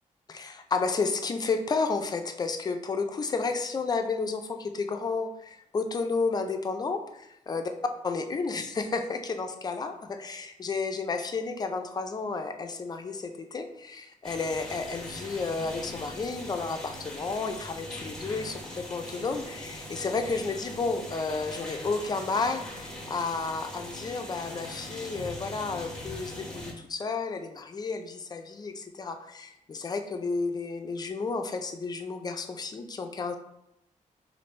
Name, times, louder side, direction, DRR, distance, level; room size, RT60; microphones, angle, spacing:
voice 1, 0.3-7.7 8.0-33.3, left 4 dB, 30° left, 6 dB, 0.4 m, -32 dB
sound 1, 14.2-26.7, left 1 dB, 5° left, 0.9 m, -41 dB
4.4 x 2.5 x 3.2 m, 0.80 s
wide cardioid pair, 120°, 14 cm